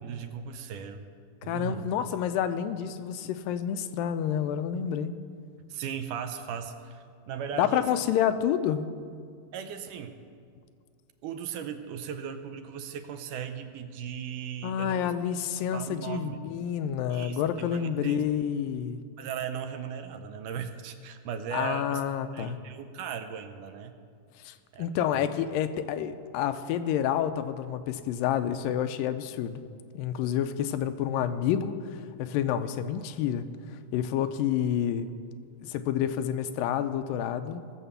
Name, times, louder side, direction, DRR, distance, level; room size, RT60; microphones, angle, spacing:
voice 1, 0.0-1.1 1.4-1.9 5.7-8.0 9.5-10.2 11.2-15.3 15.6-16.5 17.1-18.3 19.2-22.0 22.3-24.0 24.7-25.7, right 8 dB, 75° right, 8 dB, 2.1 m, -38 dB
voice 2, 1.4-5.1 7.6-8.9 14.6-19.0 21.5-22.6 24.4-29.6 29.9-33.5 33.9-35.1 35.6-37.7, left 9 dB, 90° left, 10 dB, 2.3 m, -29 dB
18.0 x 7.3 x 6.8 m, 2.2 s
omnidirectional pair, 3.9 m